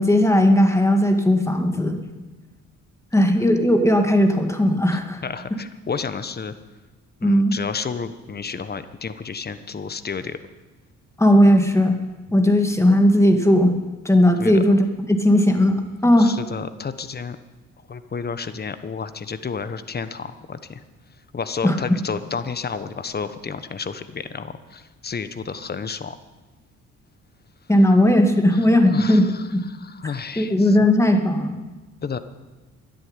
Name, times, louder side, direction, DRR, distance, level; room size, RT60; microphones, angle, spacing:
voice 1, 0.0-2.0 3.1-5.2 7.2-7.6 11.2-12.0 12.3-13.8 14.0-16.3 21.6-21.8 27.7-29.6 30.4-31.6, left 1 dB, 10° left, 5 dB, 2.1 m, -17 dB
voice 2, 5.2-6.5 7.2-10.4 14.4-14.6 16.2-17.4 17.9-20.8 21.3-26.2 28.5-28.6 28.9-29.4 29.7-30.8 32.0-32.2, left 5 dB, 30° left, 11 dB, 1.2 m, -31 dB
12.5 x 10.5 x 9.7 m, 1.2 s
cardioid pair, 90°, 30 cm